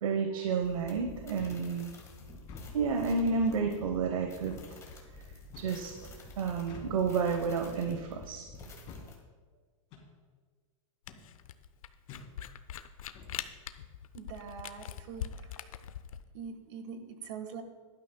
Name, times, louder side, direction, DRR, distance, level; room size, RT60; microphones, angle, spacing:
voice 1, 0.0-1.9 2.7-4.5 5.6-6.1 6.4-8.5, right 5 dB, 90° right, 4 dB, 1.0 m, -30 dB
sound 1, 0.6-9.1, left 2 dB, 15° left, 1.6 m, -49 dB
sound 2, 1.4-1.7 2.4-2.7 3.4-3.7 4.4-4.7 5.5-5.8 6.7-7.0 7.8-8.1 8.9-9.1 9.9-10.1 11.1-11.3 12.1-12.3 13.1-13.4, left 5 dB, 35° left, 3.1 m, -49 dB
Camera, 11.1-16.2, left 10 dB, 85° left, 0.7 m, -42 dB
voice 2, 14.1-15.7 16.3-17.6, right 6 dB, 60° right, 7 dB, 1.5 m, -44 dB
16.5 x 12.0 x 2.3 m, 1.5 s
supercardioid pair, 145°, 17 cm